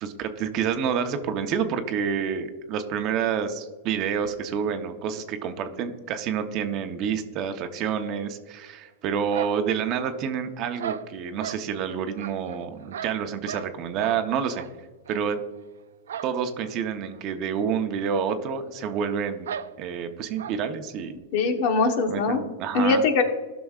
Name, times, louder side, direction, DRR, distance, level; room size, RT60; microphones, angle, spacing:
voice 1, 0.0-14.6 15.1-15.4 16.2-19.5 19.8-21.1 22.1-23.0, right 7 dB, 40° right, 7 dB, 0.8 m, -28 dB
sound 1, 9.3-10.4 10.8-11.6 12.2-13.7 14.0-14.2 14.5-14.7 15.1-15.2 16.1-16.4 16.6-16.7 17.1-17.2 18.1-18.2 18.4-18.5 19.5-19.7 20.4-20.6, right 8 dB, 85° right, 0.4 m, -36 dB
voice 2, 21.3-22.4 22.7-23.2, left 4 dB, 55° left, 5 dB, 1.2 m, -22 dB
15.0 x 6.0 x 2.4 m, 1.3 s
hypercardioid pair, 135°, 0 cm